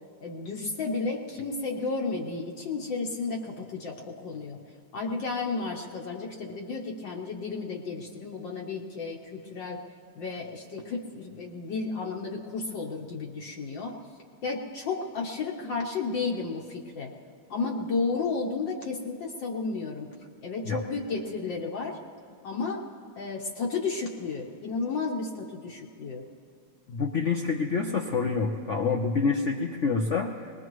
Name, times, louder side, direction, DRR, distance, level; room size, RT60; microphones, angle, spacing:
voice 1, 0.2-4.6 4.9-9.8 10.1-14.0 14.4-17.1 17.5-20.1 20.4-22.0 22.4-22.8 23.2-26.2, left 4 dB, 65° left, -2 dB, 1.6 m, -32 dB
voice 2, 26.9-30.5, left 4 dB, 80° left, 1 dB, 0.6 m, -27 dB
23.0 x 20.0 x 3.1 m, 2.2 s
omnidirectional pair, 2.3 m